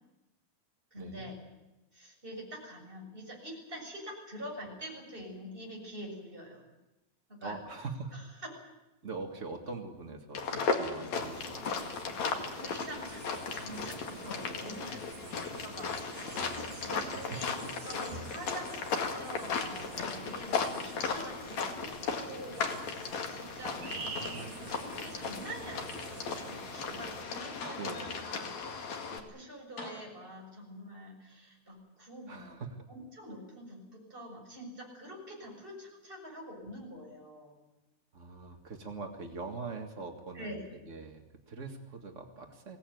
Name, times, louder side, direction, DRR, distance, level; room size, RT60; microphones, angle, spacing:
voice 1, 0.9-1.4 1.9-6.6 7.3-7.6 8.1-8.5 12.5-13.2 13.5-15.2 15.6-21.9 22.2-23.8 24.0-32.6 32.9-37.6 40.3-40.6, equal, 10° right, -1 dB, 7.2 m, -46 dB
voice 2, 7.4-8.4 9.0-11.7 16.3-17.7 23.8-24.7 27.8-28.2 32.3-32.8 38.1-42.8, right 4 dB, 65° right, 3 dB, 0.7 m, -43 dB
sound 1, 10.3-29.2, left 5 dB, 50° left, 2.9 m, -36 dB
sound 2, 11.1-27.2, right 5 dB, 90° right, 4.9 m, -47 dB
sound 3, 22.7-23.4 23.8-24.8 25.5-25.6 27.1-27.2 27.6-28.4 29.8-30.6 31.7-31.8, left 2 dB, 90° left, 9.7 m, -49 dB
23.5 x 17.5 x 9.4 m, 1.0 s
omnidirectional pair, 4.6 m